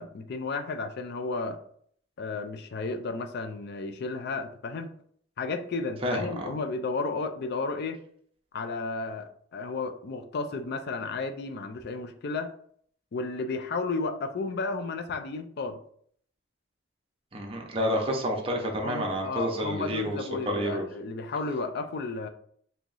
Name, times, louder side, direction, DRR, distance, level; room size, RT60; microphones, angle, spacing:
voice 1, 0.0-1.6 2.2-4.9 5.4-8.0 8.5-12.5 13.1-15.8 18.0-18.1 18.8-22.3, left 3 dB, 55° left, 8 dB, 0.4 m, -33 dB
voice 2, 6.0-6.5 17.3-20.2 20.5-20.9, equal, 30° right, 0 dB, 0.6 m, -29 dB
3.0 x 2.7 x 3.8 m, 0.62 s
head